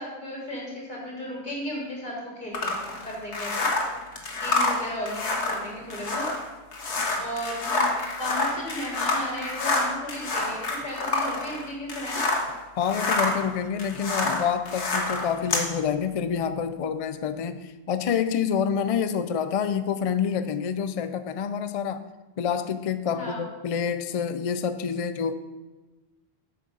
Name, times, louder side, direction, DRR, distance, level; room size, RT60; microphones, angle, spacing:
voice 1, 0.0-3.7 4.3-6.3 7.2-7.8 8.2-12.2 23.1-23.5, left 1 dB, 45° left, -3 dB, 3.1 m, -35 dB
sound 1, 2.5-12.5 12.8-15.7, left 2 dB, 85° left, 1.6 m, -27 dB
voice 2, 12.8-22.0 22.4-25.3, left 7 dB, 65° left, 11 dB, 0.3 m, -27 dB
8.4 x 6.6 x 5.3 m, 1.2 s
omnidirectional pair, 1.1 m